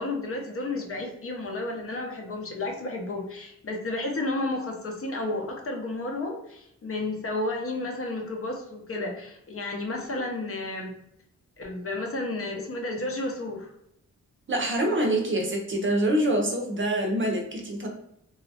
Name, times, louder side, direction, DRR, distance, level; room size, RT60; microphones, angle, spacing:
voice 1, 0.0-10.9 11.6-13.7, left 2 dB, 45° left, 2 dB, 0.6 m, -32 dB
voice 2, 14.5-17.9, right 1 dB, 40° right, 1 dB, 0.6 m, -25 dB
3.0 x 2.3 x 2.7 m, 0.75 s
wide cardioid pair, 120°, 30 cm